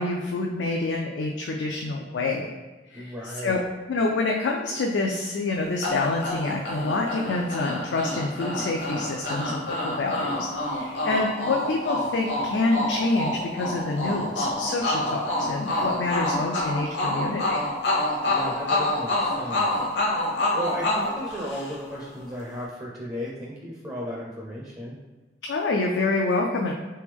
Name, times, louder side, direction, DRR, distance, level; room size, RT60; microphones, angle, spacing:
voice 1, 0.0-2.5 2.9-3.6 3.9-17.6 25.4-26.7, left 3 dB, 90° left, 0 dB, 0.4 m, -27 dB
voice 2, 2.9-3.6 18.3-19.7 20.5-25.0, equal, 20° right, -4 dB, 0.5 m, -35 dB
sound 1, 5.8-22.0, left 1 dB, 70° left, 0.8 m, -28 dB
3.3 x 3.0 x 3.4 m, 1.3 s
head